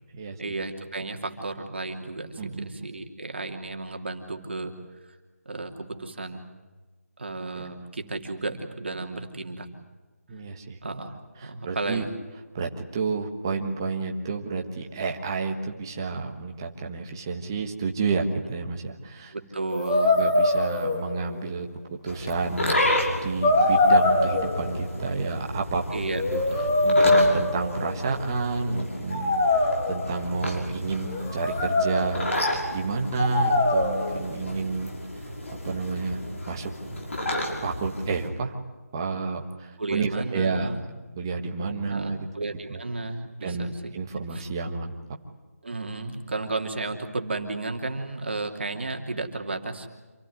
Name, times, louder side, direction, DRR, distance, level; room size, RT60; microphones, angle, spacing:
voice 1, 0.4-4.7 5.4-6.5 7.2-9.7 10.8-12.1 19.3-20.1 25.9-26.2 26.5-26.8 39.8-40.8 41.9-43.9 44.3-44.5 45.6-49.9, right 3 dB, 45° right, 4 dB, 2.9 m, -33 dB
voice 2, 2.4-2.9 7.5-7.6 10.3-10.8 11.4-12.1 12.5-19.3 20.2-21.7 22.0-22.8 23.2-25.8 26.3-26.4 26.8-32.3 32.7-34.9 35.6-36.7 37.6-38.6 38.9-40.8 41.2-42.3 42.7-42.8 43.4-44.9, right 4 dB, 15° right, 2 dB, 1.5 m, -30 dB
sound 1, 19.7-21.4 22.3-22.4 23.4-24.9 25.9-28.2 29.1-30.3 31.0-32.4 33.2-34.2, left 2 dB, 15° left, 1.9 m, -23 dB
sound 2, 22.1-38.3, left 1 dB, 55° left, 6.2 m, -32 dB
27.5 x 15.5 x 9.7 m, 1.3 s
figure-of-eight pair, 170°, 8 cm